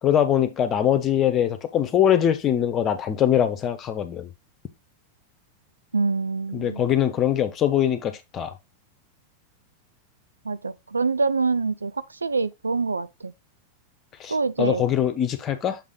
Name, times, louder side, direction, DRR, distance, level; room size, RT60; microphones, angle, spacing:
voice 1, 0.0-4.3 6.5-8.5 14.2-15.8, left 10 dB, 30° left, 1.2 m, -22 dB
voice 2, 5.9-6.9 10.4-13.3 14.3-14.9, right 4 dB, 80° right, 0.4 m, -25 dB
7.5 x 3.7 x 3.9 m
figure-of-eight pair, 90°, 0 cm